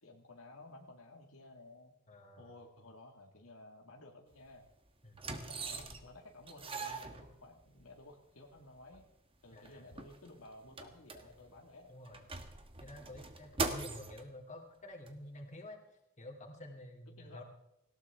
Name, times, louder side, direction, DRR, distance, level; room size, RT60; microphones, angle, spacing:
voice 1, 0.0-1.9 2.4-4.7 5.4-9.1 9.4-11.9 13.0-13.2 17.2-17.4, left 2 dB, 70° left, 1 dB, 2.0 m, -55 dB
voice 2, 2.1-2.5 5.0-5.3 9.5-9.9 11.9-12.2 12.8-15.8 16.2-17.4, left 1 dB, 35° left, 1 dB, 2.9 m, -50 dB
sound 1, 4.3-4.5 5.1-6.2 6.5-7.8 8.6-8.7 8.9-9.0 9.5-11.6 12.0-14.2 15.1-15.2, right 3 dB, 25° right, 1.4 m, -41 dB
19.0 x 17.5 x 3.6 m, 0.85 s
head